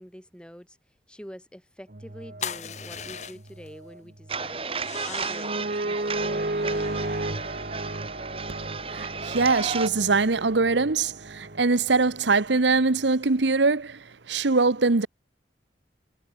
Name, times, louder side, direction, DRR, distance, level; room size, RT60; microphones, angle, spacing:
voice 1, 0.0-7.2, equal, 5° left, 6.2 m, -45 dB
sound 1, 1.9-4.6 4.9-13.0, right 2 dB, 50° right, 1.4 m, -35 dB
sound 2, 2.4-3.7 4.7-5.6 6.5-8.2, left 7 dB, 40° left, 1.1 m, -39 dB
sound 3, 4.3-9.9, right 5 dB, 30° right, 2.9 m, -33 dB
voice 2, 8.9-15.1, right 3 dB, 85° right, 1.1 m, -23 dB
head